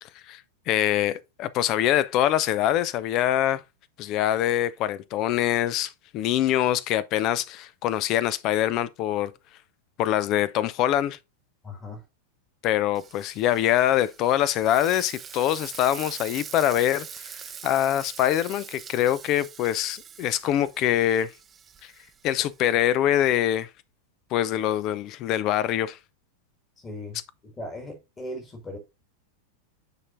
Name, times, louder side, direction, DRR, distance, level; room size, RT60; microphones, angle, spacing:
voice 1, 0.0-3.6 4.0-9.3 10.0-11.2 12.6-17.3 17.6-21.3 22.2-23.7 24.3-26.0, left 12 dB, 40° left, 0.5 m, -24 dB
voice 2, 11.6-12.0 26.8-28.8, left 1 dB, 20° left, 1.9 m, -38 dB
Frying (food), 12.9-22.7, right 7 dB, 20° right, 0.7 m, -43 dB
9.6 x 4.4 x 2.6 m
figure-of-eight pair, 90°, 0 cm